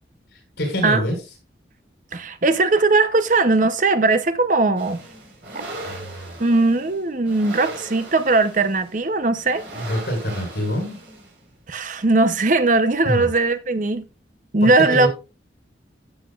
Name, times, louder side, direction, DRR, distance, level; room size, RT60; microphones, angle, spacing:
voice 1, 0.6-1.2 5.8-6.3 9.8-11.0 13.0-13.3 14.6-15.1, equal, 70° left, 5.7 m, -25 dB
voice 2, 2.1-5.0 6.4-9.6 11.7-14.1 14.5-15.1, right 3 dB, 45° right, 0.8 m, -19 dB
sound 1, 4.8-11.5, right 2 dB, 80° right, 4.5 m, -38 dB
13.5 x 7.4 x 2.4 m
head